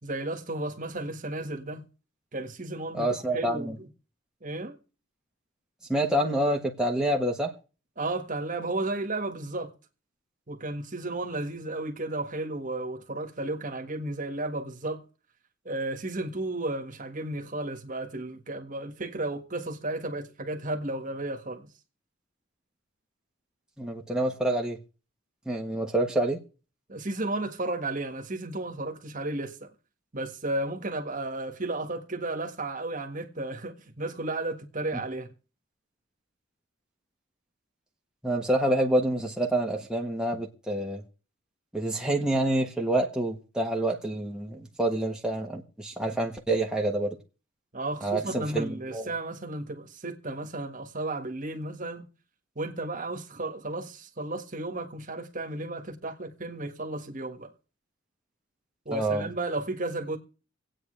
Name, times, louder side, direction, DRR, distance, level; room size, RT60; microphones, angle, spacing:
voice 1, 0.0-1.9 2.3-3.9 4.4-4.8 8.0-9.7 10.5-15.0 15.6-21.7 26.9-29.7 30.1-35.3 47.7-52.1 52.5-57.5 58.8-60.2, right 2 dB, 40° right, 1.6 m, -33 dB
voice 2, 2.9-3.8 5.9-7.5 23.8-24.8 25.5-26.4 38.2-41.0 41.7-47.2 48.0-49.1 58.9-59.3, right 1 dB, 5° right, 1.3 m, -27 dB
25.5 x 8.8 x 3.3 m
head